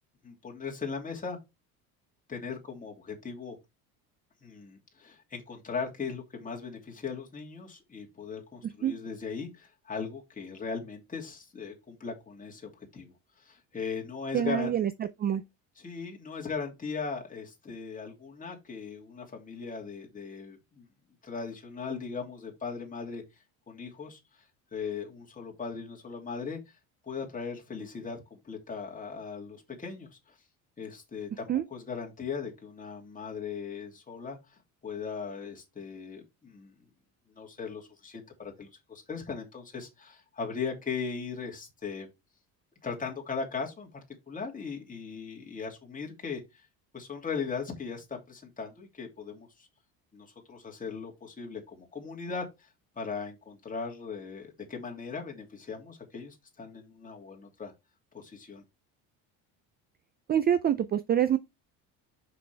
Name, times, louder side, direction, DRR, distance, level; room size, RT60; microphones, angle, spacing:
voice 1, 0.2-1.4 2.3-3.6 4.4-14.7 15.8-20.8 21.2-23.2 23.7-24.4 24.7-26.8 27.0-30.3 30.8-36.7 37.3-42.1 42.8-46.6 46.9-49.7 50.1-52.7 53.0-57.7 58.1-58.6, left 5 dB, 20° left, 2.8 m, -38 dB
voice 2, 8.6-8.9 14.3-14.9 15.2-15.4 31.5-31.6 60.3-61.4, right 9 dB, 25° right, 0.4 m, -26 dB
6.1 x 6.0 x 3.4 m
cardioid pair, 120°, 39 cm